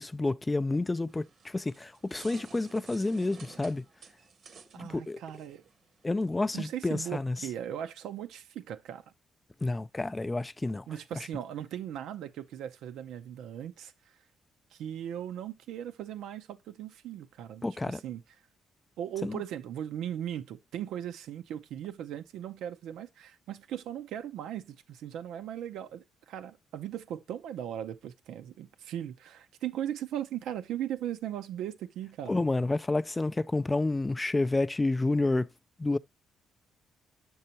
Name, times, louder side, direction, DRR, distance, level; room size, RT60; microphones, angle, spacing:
voice 1, 0.0-3.8 4.8-5.2 6.0-7.4 9.6-10.9 17.6-18.0 19.2-19.4 32.3-35.5 35.8-36.0, left 2 dB, 20° left, 0.3 m, -29 dB
sound 1, 1.1-6.3, right 5 dB, 60° right, 0.9 m, -53 dB
voice 2, 4.7-5.7 6.5-9.0 10.9-14.1 14.7-18.2 19.0-32.4, right 10 dB, 85° right, 0.6 m, -38 dB
6.7 x 5.5 x 2.8 m
cardioid pair, 90°, 0 cm